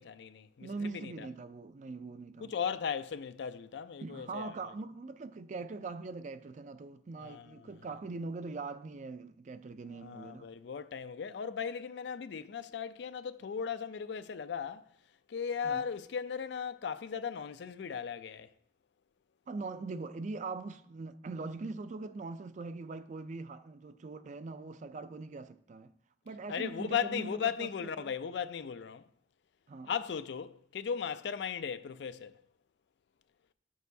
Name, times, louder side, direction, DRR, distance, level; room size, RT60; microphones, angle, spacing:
voice 1, 0.0-0.7 0.9-1.3 2.4-4.5 7.2-7.5 10.0-14.8 15.3-18.5 26.5-29.0 29.9-32.3, left 7 dB, 70° left, 0.4 m, -37 dB
voice 2, 0.6-2.5 4.0-10.5 15.6-15.9 19.5-25.9 26.2-28.1 29.7-30.0, right 3 dB, 45° right, 0.4 m, -42 dB
12.0 x 6.3 x 2.7 m
head